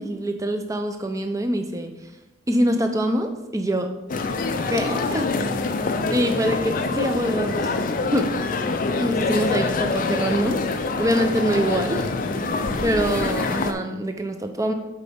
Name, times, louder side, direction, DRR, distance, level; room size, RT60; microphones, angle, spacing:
voice 1, 0.0-1.9 2.5-3.9 4.7-5.4 6.1-7.6 8.1-8.3 9.0-14.7, right 1 dB, 15° right, 6 dB, 0.5 m, -25 dB
sound 1, 4.1-13.7, left 3 dB, 40° left, 0.4 m, -25 dB
7.9 x 4.6 x 3.5 m, 1.0 s
head